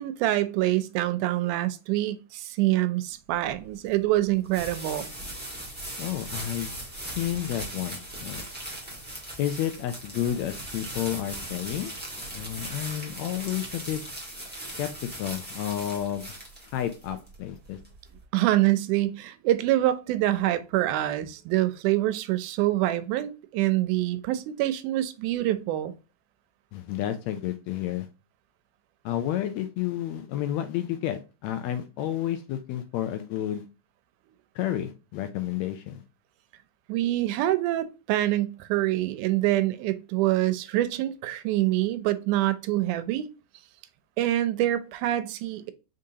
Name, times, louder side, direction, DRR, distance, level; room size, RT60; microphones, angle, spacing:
voice 1, 0.0-5.1 14.6-14.7 18.3-25.9 36.9-43.3 44.2-45.7, right 15 dB, 90° right, 2.1 m, -25 dB
sound 1, 3.3-18.2, right 1 dB, 5° right, 0.8 m, -39 dB
voice 2, 6.0-6.7 7.2-8.5 9.4-11.9 12.3-14.0 14.8-16.4 16.6-17.8 26.7-28.1 29.0-33.7 34.5-36.0, left 11 dB, 80° left, 1.6 m, -31 dB
5.0 x 3.8 x 2.7 m
omnidirectional pair, 3.5 m